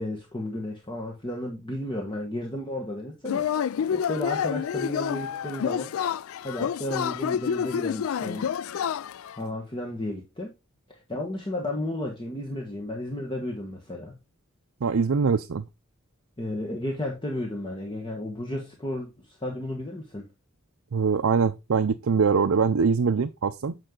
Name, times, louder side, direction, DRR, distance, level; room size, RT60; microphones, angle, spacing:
voice 1, 0.0-3.4 3.9-5.9 6.4-8.5 9.4-10.5 11.1-14.2 16.4-20.2, left 1 dB, 20° left, 1.5 m, -33 dB
Yell / Cheering, 3.2-9.4, left 8 dB, 70° left, 0.3 m, -28 dB
voice 2, 14.8-15.7 20.9-23.8, right 5 dB, 70° right, 0.5 m, -23 dB
8.8 x 5.5 x 3.8 m
head